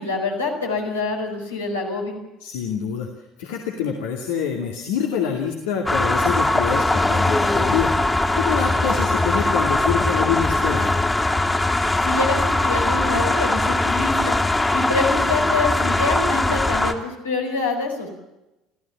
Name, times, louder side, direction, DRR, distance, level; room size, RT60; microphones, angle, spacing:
voice 1, 0.0-2.2 12.0-14.4 14.7-18.1, left 3 dB, 85° left, -1 dB, 5.3 m, -25 dB
voice 2, 2.4-3.1 3.4-7.9 8.3-11.0, left 7 dB, 65° left, 1 dB, 2.5 m, -26 dB
sound 1, 5.9-16.9, left 2 dB, 15° left, 2.6 m, -20 dB
28.5 x 15.5 x 7.2 m, 0.96 s
figure-of-eight pair, 60°, 0 cm